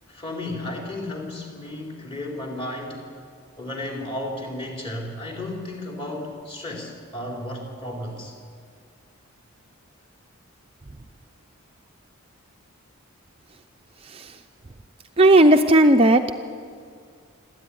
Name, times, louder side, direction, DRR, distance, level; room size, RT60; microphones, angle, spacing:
voice 1, 0.1-3.0 3.6-8.3, left 1 dB, 25° left, 0 dB, 4.2 m, -33 dB
voice 2, 15.2-16.3, right 1 dB, 25° right, 5 dB, 0.6 m, -14 dB
26.5 x 13.5 x 10.0 m, 2.2 s
head